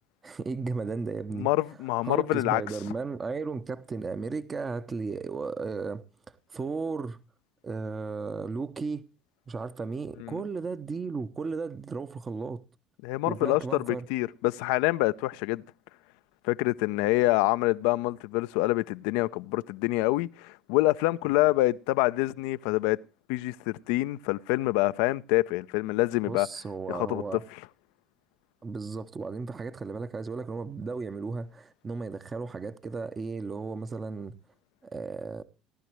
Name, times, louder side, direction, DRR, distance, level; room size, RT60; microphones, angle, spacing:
voice 1, 0.2-1.5 2.0-6.0 6.5-7.2 7.6-9.0 9.5-12.6 13.3-14.1 26.3-27.4 28.6-34.3 34.8-35.4, right 4 dB, 30° right, 1.0 m, -35 dB
voice 2, 1.3-2.6 10.2-10.4 13.0-15.6 16.4-23.0 23.3-26.5 26.9-27.6, left 19 dB, 70° left, 0.6 m, -26 dB
18.0 x 12.0 x 3.1 m
hypercardioid pair, 65°, 0 cm